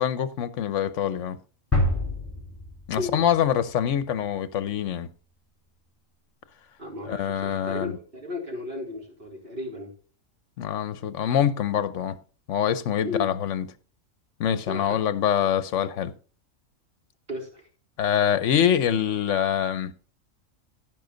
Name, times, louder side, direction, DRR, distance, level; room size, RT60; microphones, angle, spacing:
voice 1, 0.0-1.4 2.9-5.1 7.1-7.9 10.6-12.2 12.5-13.6 14.4-16.1 18.0-19.9, left 9 dB, 65° left, 1.1 m, -25 dB
sound 1, 1.7-3.6, left 1 dB, 10° left, 3.9 m, -27 dB
voice 2, 6.8-9.9 13.0-13.3 14.6-15.0 17.3-17.7, left 2 dB, 40° right, 3.9 m, -34 dB
15.5 x 5.7 x 3.9 m
omnidirectional pair, 1.4 m